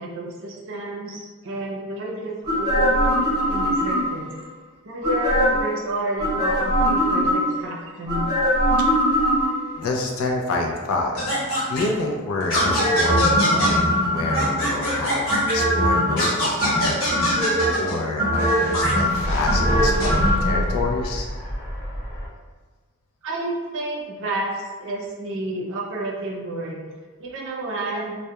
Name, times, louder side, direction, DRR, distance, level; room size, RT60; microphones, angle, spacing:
voice 1, 0.0-4.2 4.8-8.2 23.2-26.8 27.2-28.2, right 2 dB, 60° right, -3 dB, 0.5 m, -30 dB
sound 1, 2.4-4.3 5.0-5.7 6.2-7.6 8.1-9.8 12.6-14.7 15.3-16.2 16.6-17.7 18.2-20.5 20.8-20.9, equal, 20° right, 0.7 m, -21 dB
voice 2, 8.8-9.3 9.8-11.1 11.7-21.3, left 2 dB, 85° left, 0 dB, 0.4 m, -28 dB
sound 2, 10.5-17.3 18.3-22.3, equal, 45° left, 0.8 m, -30 dB
sound 3, 11.2-11.8 12.5-13.7 14.3-15.5 16.2-18.0 18.7-18.9 19.8-20.1, equal, 65° left, 1.1 m, -24 dB
2.2 x 2.1 x 2.8 m, 1.4 s
head